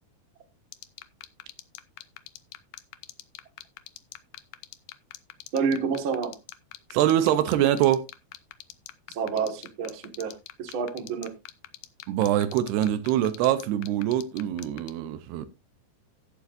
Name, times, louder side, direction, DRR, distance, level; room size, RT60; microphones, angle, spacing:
sound 1, 0.7-14.9, left 15 dB, 85° left, 1.9 m, -42 dB
voice 1, 5.5-6.4 9.1-11.3, right 6 dB, 45° right, 1.9 m, -29 dB
voice 2, 6.9-8.1 12.1-15.5, right 12 dB, 80° right, 2.9 m, -24 dB
16.0 x 7.6 x 2.6 m
omnidirectional pair, 4.7 m